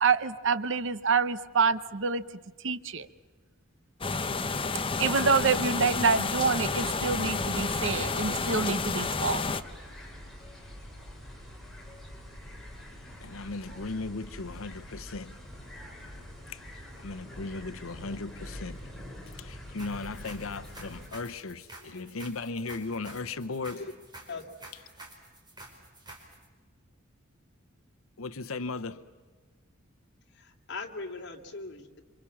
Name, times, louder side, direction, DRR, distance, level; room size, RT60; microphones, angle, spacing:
voice 1, 0.0-2.2 2.6-3.1 5.0-9.4, right 5 dB, 65° right, 0.9 m, -27 dB
sound 1, 4.0-9.6, left 4 dB, 25° left, 0.9 m, -30 dB
sound 2, 6.7-21.1, equal, ahead, 5.3 m, -45 dB
voice 2, 13.2-15.4 16.5-16.6 17.0-18.9 19.3-23.8 28.2-29.0, left 3 dB, 80° left, 0.9 m, -37 dB
sound 3, 19.8-26.5, right 2 dB, 20° right, 5.1 m, -49 dB
voice 3, 30.3-32.0, left 3 dB, 55° left, 2.7 m, -40 dB
27.5 x 26.5 x 7.2 m
head